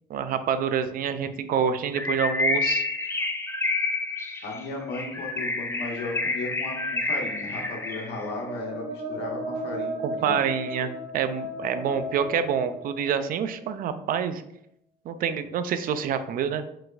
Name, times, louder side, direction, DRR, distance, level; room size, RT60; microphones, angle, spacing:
voice 1, 0.1-2.9 10.0-14.4 15.1-16.6, right 7 dB, 55° right, 11 dB, 0.4 m, -27 dB
Bird, 1.9-8.3, left 2 dB, 15° left, 0.5 m, -28 dB
voice 2, 4.4-10.4, left 3 dB, 80° left, 0 dB, 1.2 m, -35 dB
sound 1, 7.8-13.6, equal, 70° right, 1.0 m, -35 dB
4.4 x 4.1 x 2.5 m, 0.75 s
cardioid pair, 110°, 17 cm